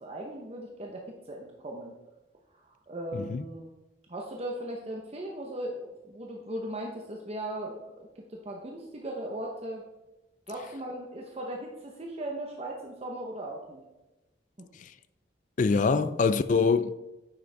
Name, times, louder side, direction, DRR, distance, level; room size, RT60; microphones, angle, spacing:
voice 1, 0.0-1.9 2.6-3.7 4.1-9.8 10.5-13.8, right 1 dB, 35° right, 0.9 m, -38 dB
voice 2, 15.6-16.9, left 4 dB, 45° left, 0.3 m, -24 dB
9.6 x 6.3 x 3.4 m
head